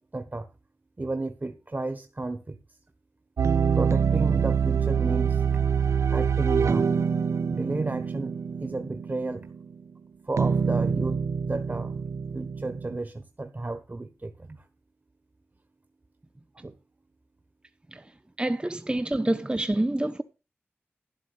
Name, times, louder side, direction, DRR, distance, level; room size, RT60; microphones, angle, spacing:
voice 1, 0.1-0.5 1.0-2.6 3.7-5.4 6.1-7.0 7.5-8.3 8.6-9.5 10.2-12.0 12.3-14.7 16.5-16.7 17.9-18.1, right 2 dB, 40° right, 1.3 m, -33 dB
sound 1, 3.4-9.5 10.4-13.0, right 6 dB, 90° right, 0.6 m, -25 dB
voice 2, 18.4-20.2, right 1 dB, 20° right, 1.0 m, -26 dB
12.0 x 7.5 x 5.6 m
cardioid pair, 40°, 5 cm